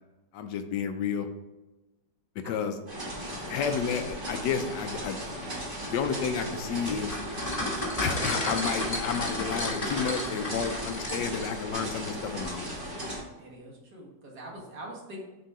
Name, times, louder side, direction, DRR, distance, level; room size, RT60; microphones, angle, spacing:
voice 1, 0.3-1.3 2.4-2.8 3.5-5.2 5.9-7.2 8.0-12.8, left 6 dB, 75° left, 7 dB, 1.2 m, -31 dB
sound 1, 2.9-13.2, equal, 30° right, 2.3 m, -37 dB
sound 2, 6.9-11.5, left 1 dB, 25° left, 1.2 m, -33 dB
voice 2, 13.4-15.2, right 1 dB, 60° right, -2 dB, 2.1 m, -44 dB
6.8 x 3.8 x 4.7 m, 1.1 s
omnidirectional pair, 2.0 m